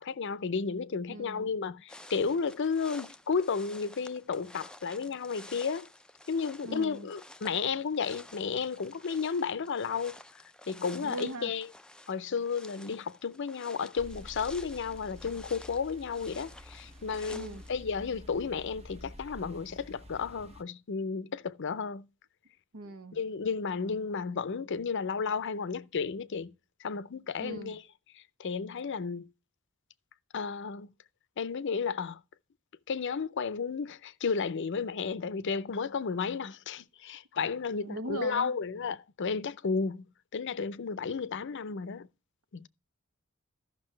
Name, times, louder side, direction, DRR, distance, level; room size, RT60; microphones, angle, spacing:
voice 1, 0.0-5.9 6.3-10.1 10.7-11.7 12.1-22.1 23.1-26.5 26.8-27.8 28.1-29.3 30.3-30.9 31.4-32.2 32.9-40.0 40.3-42.1 42.5-42.7, left 5 dB, 60° left, 0.5 m, -33 dB
voice 2, 1.1-1.5 6.6-7.1 11.0-11.5 17.3-17.7 22.7-23.2 27.4-27.8 37.8-38.6, right 2 dB, 85° right, 1.1 m, -40 dB
sound 1, 1.9-17.7, left 1 dB, 5° left, 0.4 m, -52 dB
sound 2, 14.0-20.6, equal, 30° right, 0.9 m, -49 dB
14.5 x 6.1 x 3.2 m
head